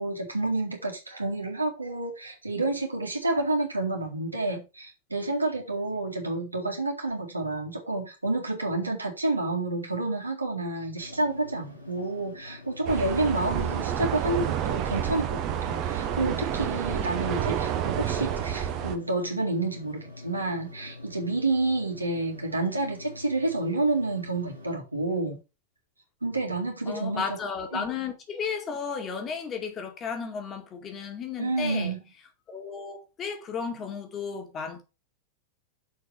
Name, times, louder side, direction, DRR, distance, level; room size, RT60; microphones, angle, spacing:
voice 1, 0.0-25.4 26.2-27.4 27.7-27.9 31.4-32.0, right 2 dB, 85° right, 2.0 m, -29 dB
sound 1, 11.0-24.7, left 2 dB, 90° left, 2.8 m, -46 dB
sound 2, 12.8-19.0, right 10 dB, 40° right, 1.1 m, -29 dB
voice 2, 26.9-32.0 32.5-34.8, left 5 dB, 25° left, 2.2 m, -34 dB
6.8 x 5.1 x 4.9 m
figure-of-eight pair, 90°, 0 cm